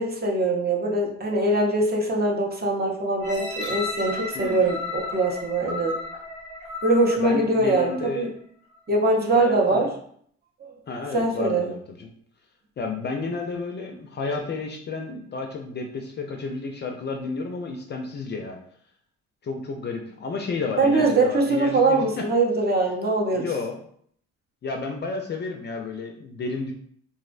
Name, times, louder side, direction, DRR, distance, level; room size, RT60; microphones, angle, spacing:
voice 1, 0.0-6.0 6.8-8.3 8.9-9.9 11.1-11.7 20.8-23.5, right 2 dB, 30° right, 1 dB, 0.6 m, -22 dB
sound 1, 3.2-8.1 8.7-8.8, left 2 dB, 80° right, 1.0 m, -34 dB
voice 2, 4.3-4.7 7.2-8.3 9.2-9.9 10.9-12.1 12.8-18.6 19.4-22.3 23.3-23.8 24.6-26.7, left 4 dB, 35° left, 3 dB, 0.4 m, -31 dB
2.5 x 2.0 x 2.4 m, 0.63 s
supercardioid pair, 70°, 31 cm